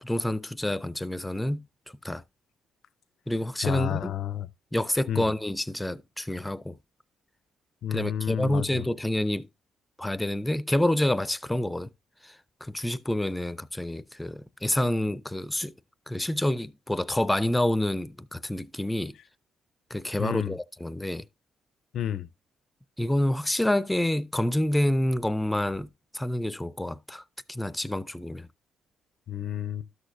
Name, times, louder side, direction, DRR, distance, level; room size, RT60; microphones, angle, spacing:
voice 1, 0.0-1.6 2.0-2.2 3.3-4.2 4.7-6.8 7.9-9.5 10.0-11.9 12.2-12.4 12.6-15.7 16.1-19.2 19.9-21.3 23.0-27.2 27.5-28.5, left 1 dB, 10° left, 0.4 m, -28 dB
voice 2, 3.6-4.5 5.1-5.3 7.8-8.9 20.2-20.6 21.9-22.3 29.3-29.9, left 10 dB, 70° left, 0.4 m, -30 dB
12.5 x 6.4 x 2.5 m
cardioid pair, 90°, 0 cm